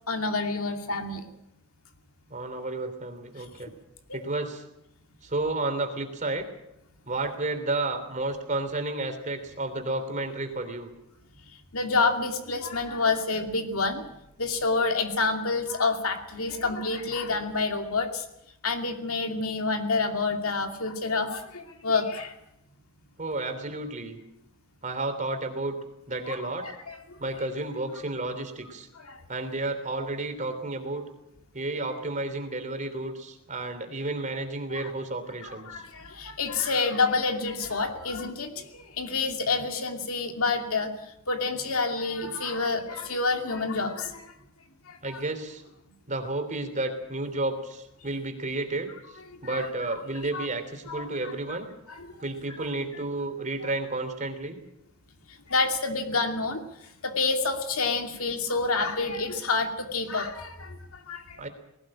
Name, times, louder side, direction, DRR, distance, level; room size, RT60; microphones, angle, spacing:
voice 1, 0.1-1.2 11.7-14.0 14.4-18.2 18.6-22.4 26.3-27.2 28.9-29.2 34.7-34.9 35.4-40.9 41.3-44.3 44.9-45.2 49.3-49.7 50.3-50.5 50.9-51.1 51.9-52.2 52.6-52.7 55.5-61.4, left 3 dB, 70° left, 5 dB, 2.6 m, -28 dB
voice 2, 2.3-3.7 4.1-4.6 5.2-6.4 7.1-10.9 23.2-24.2 24.8-25.8 26.1-26.7 27.2-28.9 29.3-31.0 31.5-35.7 45.0-45.6 46.1-48.9 49.4-51.7 52.2-54.6 61.4-61.5, right 2 dB, 35° right, 6 dB, 3.3 m, -31 dB
19.5 x 17.5 x 8.8 m, 0.83 s
head